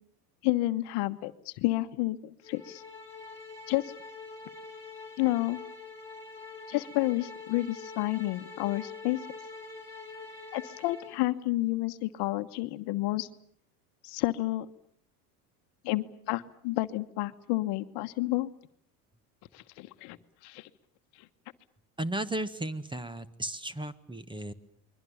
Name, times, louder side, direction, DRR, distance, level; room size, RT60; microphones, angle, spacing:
voice 1, 0.4-2.8 3.7-3.8 5.2-5.6 6.7-9.2 10.5-13.3 14.0-14.7 15.8-18.5 19.5-20.2 20.4-20.7, left 18 dB, 60° left, 10 dB, 1.3 m, -30 dB
sound 1, 2.4-11.3, left 4 dB, 5° left, 4.8 m, -45 dB
voice 2, 22.0-24.5, right 1 dB, 10° right, 15 dB, 1.4 m, -35 dB
28.5 x 22.5 x 7.1 m, 0.65 s
hypercardioid pair, 90°, 45 cm